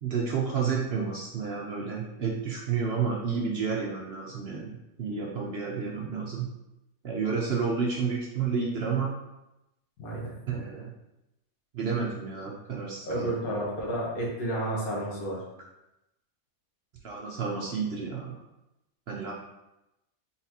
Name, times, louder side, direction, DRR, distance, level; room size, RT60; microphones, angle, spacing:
voice 1, 0.0-6.5 7.0-9.1 10.5-10.9 11.7-13.3 17.0-18.4 19.1-19.3, right 5 dB, 55° right, -2 dB, 0.7 m, -30 dB
voice 2, 10.0-10.3 13.1-15.4, right 1 dB, 80° left, -4 dB, 1.7 m, -31 dB
4.2 x 4.0 x 2.8 m, 0.92 s
omnidirectional pair, 1.5 m